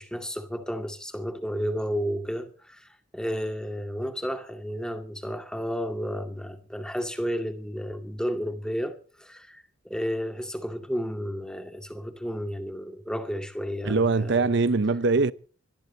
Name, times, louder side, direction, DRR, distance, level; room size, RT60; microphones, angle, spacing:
voice 1, 0.0-14.5, equal, 5° left, 2.2 m, -32 dB
voice 2, 13.8-15.3, right 3 dB, 60° right, 0.6 m, -22 dB
25.0 x 18.5 x 2.8 m
head